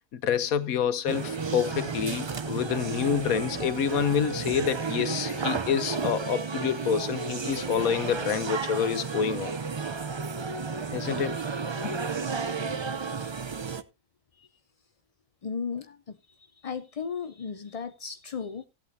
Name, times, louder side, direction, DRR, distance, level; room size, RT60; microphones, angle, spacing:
voice 1, 0.1-9.5 10.9-11.4 11.8-12.0, left 8 dB, 90° left, 1.4 m, -28 dB
sound 1, 1.1-13.8, right 5 dB, 40° right, 0.3 m, -32 dB
voice 2, 15.4-16.2 16.6-18.6, left 6 dB, 55° left, 0.4 m, -35 dB
16.0 x 8.4 x 2.7 m
omnidirectional pair, 1.4 m